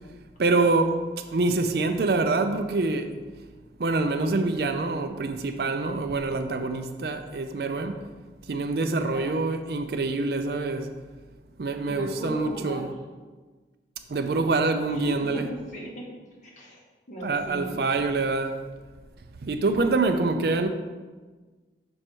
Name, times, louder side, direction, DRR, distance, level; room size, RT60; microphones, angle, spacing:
voice 1, 0.4-1.0 1.3-3.1 3.8-8.1 8.5-10.9 11.6-12.9 14.1-15.5 17.2-18.6 19.4-20.7, right 3 dB, 60° right, 0.4 m, -25 dB
voice 2, 9.0-9.5 11.8-12.9 14.9-16.1 16.4-17.8, equal, 45° left, 1.5 m, -37 dB
6.2 x 4.6 x 4.5 m
head